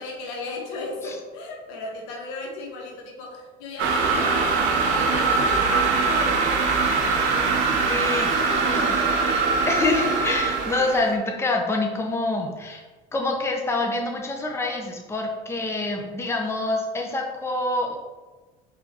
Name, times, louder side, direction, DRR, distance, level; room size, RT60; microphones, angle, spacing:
voice 1, 0.0-6.5 8.4-9.4, left 3 dB, 80° left, 0 dB, 1.1 m, -35 dB
sound 1, 3.8-11.2, right 4 dB, 70° right, 0.7 m, -22 dB
voice 2, 7.9-8.3 8.7-8.8 9.6-12.8 13.1-18.0, left 2 dB, 10° left, 2 dB, 0.6 m, -26 dB
4.5 x 3.4 x 2.8 m, 1.2 s
supercardioid pair, 95°, 20 cm